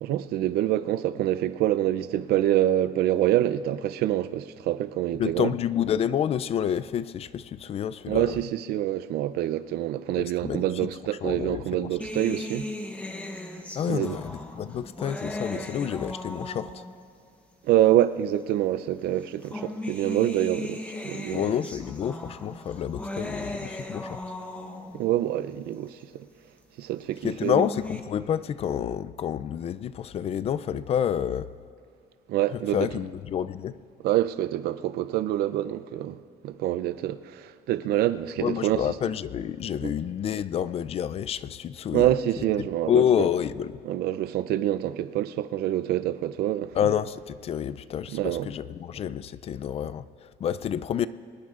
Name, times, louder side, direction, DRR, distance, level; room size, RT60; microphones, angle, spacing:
voice 1, 0.0-5.5 8.1-12.7 13.9-14.2 15.6-15.7 17.6-21.5 24.9-26.3 26.8-27.6 32.3-32.9 34.0-36.2 36.4-38.8 39.8-40.0 41.9-43.0 43.9-46.7 48.1-48.5, right 13 dB, 75° right, 0.5 m, -26 dB
voice 2, 5.2-8.4 10.2-10.7 11.2-12.0 13.7-16.9 21.3-24.2 27.2-31.5 32.5-33.8 38.4-42.1 42.6-43.8 46.7-51.1, left 9 dB, 40° left, 0.4 m, -29 dB
sound 1, 12.0-17.1 18.0-18.1 19.2-25.1 27.2-28.0, left 1 dB, 10° left, 0.9 m, -37 dB
24.5 x 19.5 x 2.5 m
cardioid pair, 150°, 16 cm